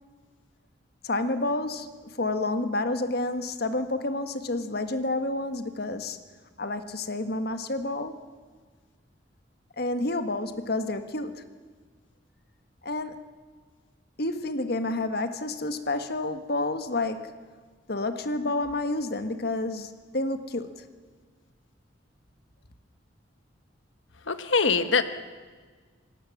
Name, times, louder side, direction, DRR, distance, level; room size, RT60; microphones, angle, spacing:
voice 1, 1.0-6.2 6.6-8.1 9.8-11.4 12.8-13.2 14.2-17.4 17.9-20.8, left 2 dB, 55° left, 9 dB, 1.5 m, -29 dB
voice 2, 24.3-25.0, left 5 dB, 90° left, 10 dB, 1.4 m, -23 dB
27.0 x 17.5 x 7.3 m, 1.5 s
head